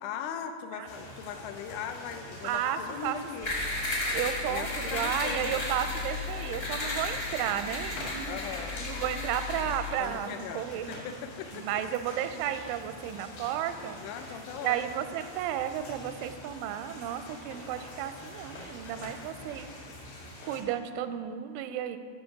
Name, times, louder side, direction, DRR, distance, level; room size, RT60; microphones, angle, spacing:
voice 1, 0.0-3.5 4.5-5.7 8.3-8.7 10.0-11.7 14.0-14.8, left 8 dB, 80° left, 7 dB, 3.0 m, -39 dB
sound 1, 0.9-20.6, left 1 dB, 65° left, 4.2 m, -45 dB
voice 2, 2.4-3.2 4.1-11.0 11.5-14.0 14.5-19.7 20.4-22.0, right 10 dB, 90° right, 10 dB, 3.0 m, -33 dB
sound 2, 3.4-9.9, left 2 dB, 50° left, 1.0 m, -34 dB
11.5 x 7.2 x 5.8 m, 2.2 s
omnidirectional pair, 5.4 m